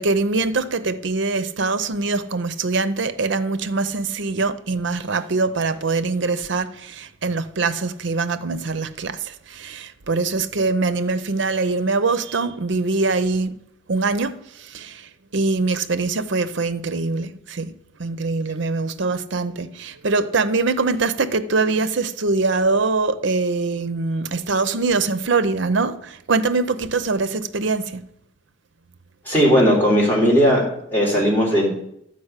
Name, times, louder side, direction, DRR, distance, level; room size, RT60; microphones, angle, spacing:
voice 1, 0.0-13.6 13.9-17.7 18.0-28.0, right 3 dB, 65° right, 0.7 m, -23 dB
voice 2, 29.2-30.7 30.9-31.7, equal, 10° left, 3.4 m, -17 dB
11.5 x 5.2 x 8.1 m
head